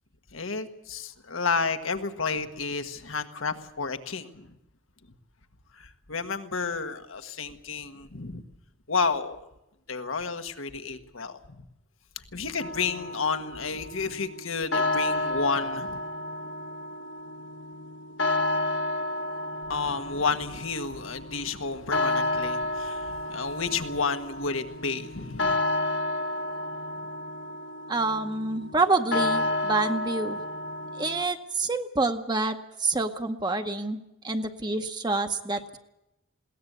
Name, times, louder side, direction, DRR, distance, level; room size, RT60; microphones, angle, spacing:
voice 1, 0.3-4.5 5.8-8.4 8.9-9.4 9.9-11.4 12.3-16.0 19.7-25.6, left 4 dB, 85° left, 8 dB, 1.6 m, -31 dB
sound 1, 12.6-31.2, left 2 dB, 65° left, 1.6 m, -31 dB
voice 2, 27.9-30.4 31.0-35.8, right 3 dB, 20° right, 6 dB, 0.9 m, -27 dB
21.5 x 18.0 x 8.1 m, 0.88 s
head